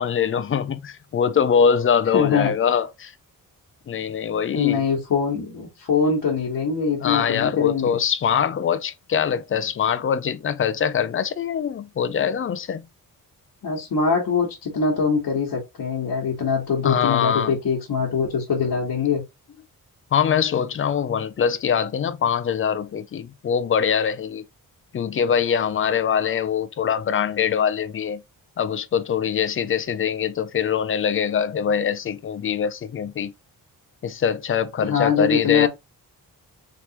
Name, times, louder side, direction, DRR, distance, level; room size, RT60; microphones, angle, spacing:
voice 1, 0.0-3.1 3.9-4.8 7.0-12.8 16.8-17.5 20.1-24.4 24.9-28.2 28.6-33.3 34.0-35.7, left 7 dB, 35° left, 0.4 m, -23 dB
voice 2, 2.1-2.5 4.5-8.0 13.6-19.2 34.8-35.7, left 5 dB, 65° left, 1.2 m, -23 dB
3.3 x 3.0 x 2.8 m
wide cardioid pair, 130°, 36 cm